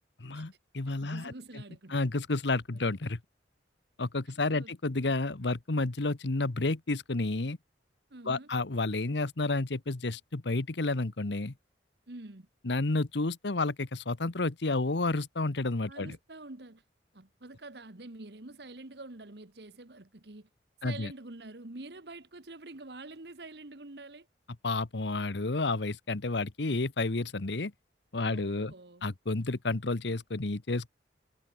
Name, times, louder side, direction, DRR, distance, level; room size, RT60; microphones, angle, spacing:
voice 1, 0.2-1.3 1.9-3.2 4.0-7.6 8.2-11.5 12.6-16.2 20.8-21.1 24.6-27.7 28.1-28.7 29.0-30.9, left 2 dB, 70° left, 1.2 m, -31 dB
voice 2, 1.0-2.0 4.5-4.7 8.1-8.5 12.1-12.5 15.9-16.8 17.1-20.5 20.8-24.3 28.2-29.1, right 2 dB, 65° right, 1.5 m, -46 dB
head